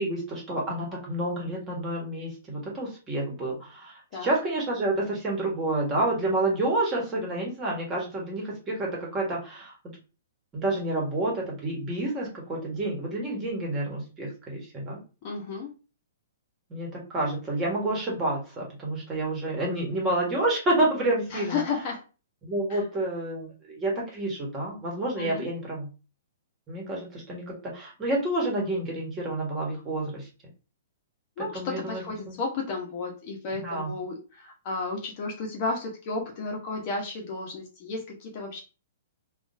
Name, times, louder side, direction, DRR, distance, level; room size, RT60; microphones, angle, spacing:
voice 1, 0.0-10.0 10.5-15.0 16.7-21.6 22.4-25.9 26.7-30.3 31.4-32.3 33.6-33.9, right 1 dB, 20° right, -2 dB, 1.5 m, -29 dB
voice 2, 15.2-15.7 21.3-22.0 22.7-22.8 25.2-25.5 31.4-38.6, left 3 dB, 45° left, 1 dB, 1.0 m, -33 dB
3.5 x 2.5 x 2.6 m, 0.33 s
hypercardioid pair, 135°, 0 cm